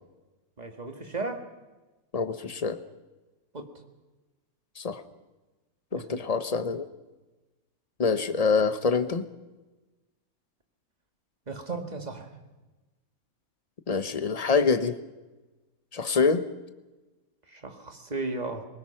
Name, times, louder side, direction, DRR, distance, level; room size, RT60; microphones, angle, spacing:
voice 1, 0.6-1.4 3.5-3.7 5.9-6.2 11.5-12.3 17.5-18.7, right 3 dB, 30° right, 5 dB, 1.9 m, -35 dB
voice 2, 2.1-2.8 4.8-5.0 5.9-6.9 8.0-9.3 13.9-15.0 15.9-16.4, left 5 dB, 30° left, 11 dB, 0.9 m, -25 dB
22.5 x 20.0 x 5.8 m, 1.1 s
omnidirectional pair, 1.5 m